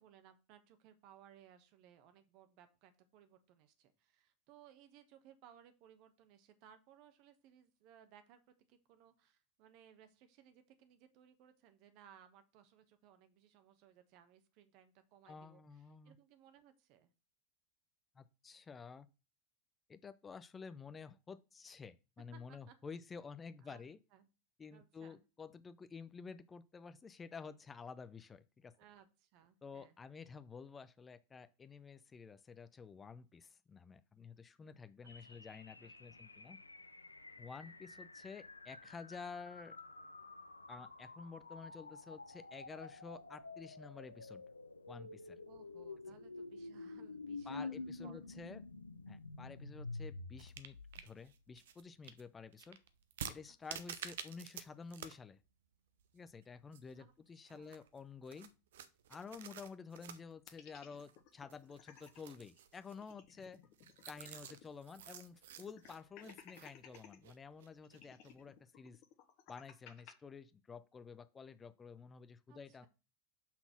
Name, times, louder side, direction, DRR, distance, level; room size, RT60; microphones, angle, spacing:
voice 1, 0.0-17.1 22.3-23.0 23.6-23.8 24.1-24.3 24.7-25.2 28.7-29.9 35.0-35.4 35.8-36.2 37.6-37.8 45.4-48.4 53.5-53.9 57.0-57.7 72.5-72.9, right 9 dB, 50° right, 1.1 m, -63 dB
voice 2, 15.2-16.2 18.2-19.1 19.9-24.0 24.6-28.7 29.6-36.6 37.4-39.8 40.7-44.4 44.9-45.4 47.5-48.6 49.1-50.8 51.0-52.8 53.3-55.4 56.1-58.5 59.1-63.6 64.1-69.0 69.5-72.9, left 5 dB, 20° left, 0.5 m, -51 dB
sound 1, 35.1-51.3, left 3 dB, 90° left, 0.4 m, -50 dB
sound 2, 50.4-54.6 54.9-55.2 55.5-55.6 56.0-57.1 57.5-68.4, right 8 dB, 70° right, 0.7 m, -51 dB
sound 3, 60.5-62.2 62.6-62.7 62.9-64.7 65.0-65.1 65.6-67.2 67.8-70.1, left 9 dB, 50° left, 1.1 m, -58 dB
5.8 x 4.0 x 5.9 m
figure-of-eight pair, 80°, 0 cm